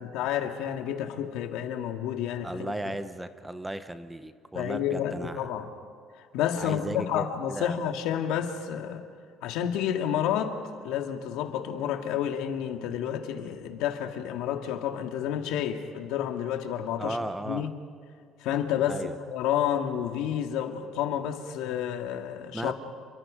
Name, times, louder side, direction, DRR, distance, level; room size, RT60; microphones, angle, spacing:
voice 1, 0.0-2.9 4.5-5.7 6.3-9.1 9.4-10.6 10.8-17.2 17.5-17.7 18.4-22.7, left 9 dB, 80° left, 5 dB, 1.9 m, -30 dB
voice 2, 2.4-5.5 6.6-7.8 17.0-17.7 18.9-19.2 22.5-22.7, right 1 dB, 5° right, 11 dB, 0.7 m, -35 dB
29.0 x 24.0 x 5.1 m, 2.2 s
cardioid pair, 170°, 0 cm